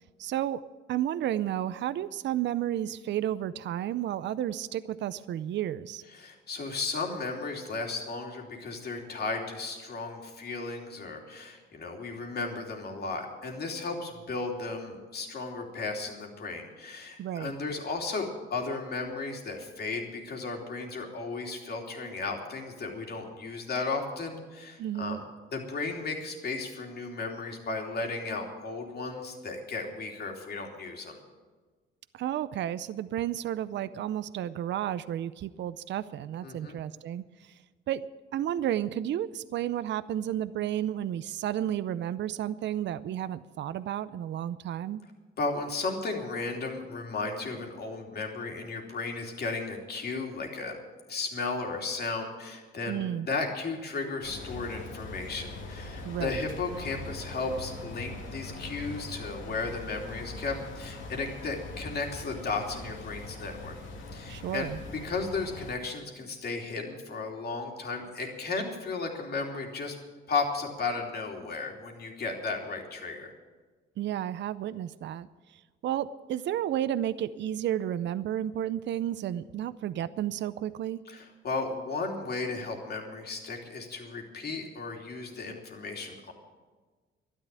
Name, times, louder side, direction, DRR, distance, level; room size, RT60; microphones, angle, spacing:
voice 1, 0.2-0.6 0.9-6.0 17.2-17.5 24.8-25.2 32.1-37.6 37.9-38.1 38.3-45.0 52.9-53.3 56.0-56.4 64.3-64.8 74.0-81.0, right 11 dB, 65° right, 14 dB, 0.6 m, -32 dB
voice 2, 6.1-25.2 25.5-31.2 36.4-36.8 45.4-50.7 51.1-63.8 64.1-70.0 70.3-73.3 81.1-86.3, left 3 dB, 55° left, 2 dB, 3.1 m, -35 dB
sound 1, 54.2-65.8, left 2 dB, 75° left, 2.2 m, -42 dB
12.5 x 10.5 x 9.1 m, 1.3 s
cardioid pair, 90°, 20 cm